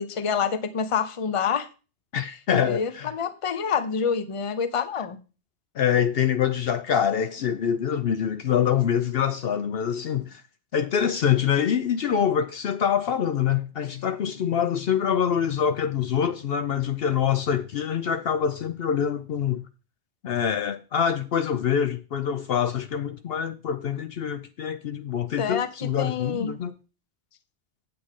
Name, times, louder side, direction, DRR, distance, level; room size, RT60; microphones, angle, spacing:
voice 1, 0.0-1.7 2.6-5.2 25.4-26.6, left 6 dB, 35° left, 0.7 m, -27 dB
voice 2, 2.1-3.1 5.8-10.4 10.7-19.7 20.2-26.7, left 8 dB, 65° left, 0.8 m, -25 dB
8.5 x 8.4 x 3.7 m
omnidirectional pair, 1.2 m